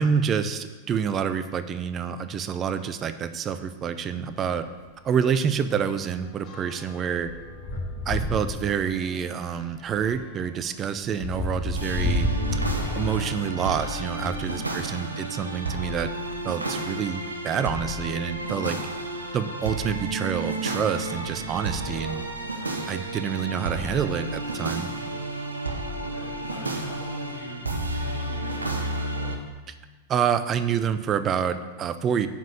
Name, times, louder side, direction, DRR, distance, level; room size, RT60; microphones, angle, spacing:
voice 1, 0.0-4.6 5.0-7.3 8.1-12.6 12.9-16.1 16.4-18.8 19.3-22.2 22.9-24.9 30.1-32.3, right 7 dB, 25° right, 11 dB, 0.6 m, -27 dB
sound 1, 4.2-4.3 4.6-4.8 5.1-14.6 15.3-16.6 17.3-17.4 17.6-17.7 19.4-19.5 20.2-20.5 20.8-22.1, left 1 dB, 25° left, 1.7 m, -33 dB
sound 2, 11.7-29.4, right 2 dB, 80° right, 0.9 m, -32 dB
voice 2, 14.5-15.1 21.8-22.3 24.8-25.3 26.0-27.7 28.0-29.5, left 3 dB, 60° left, -2 dB, 1.3 m, -42 dB
7.4 x 5.4 x 7.3 m, 1.3 s
figure-of-eight pair, 90°, 0 cm